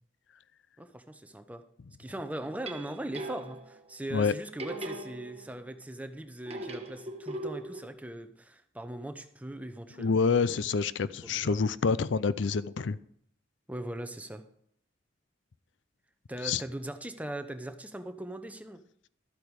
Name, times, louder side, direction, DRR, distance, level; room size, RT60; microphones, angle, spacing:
voice 1, 0.8-1.6 2.0-10.6 11.2-11.7 13.7-14.4 16.3-18.8, right 1 dB, 10° right, 8 dB, 0.8 m, -40 dB
sound 1, 2.4-3.8 4.6-5.7 6.5-7.9, right 2 dB, 35° right, 1.3 m, -40 dB
voice 2, 10.0-13.0 16.4-16.6, left 5 dB, 75° left, 17 dB, 0.5 m, -27 dB
13.0 x 8.5 x 4.8 m, 0.67 s
head